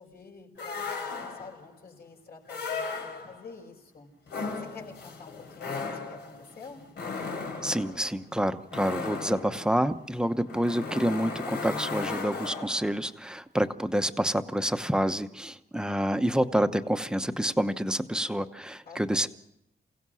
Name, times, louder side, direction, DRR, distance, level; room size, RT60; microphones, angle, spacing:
voice 1, 0.0-4.1 4.6-6.8 18.9-19.2, left 4 dB, 65° left, 0 dB, 5.4 m, -48 dB
sound 1, 0.6-1.7 2.5-3.5 4.3-13.0, left 4 dB, 85° left, 3.7 m, -36 dB
voice 2, 7.6-19.3, equal, 5° right, 9 dB, 0.9 m, -28 dB
28.5 x 17.0 x 6.3 m, 0.79 s
wide cardioid pair, 135°, 17 cm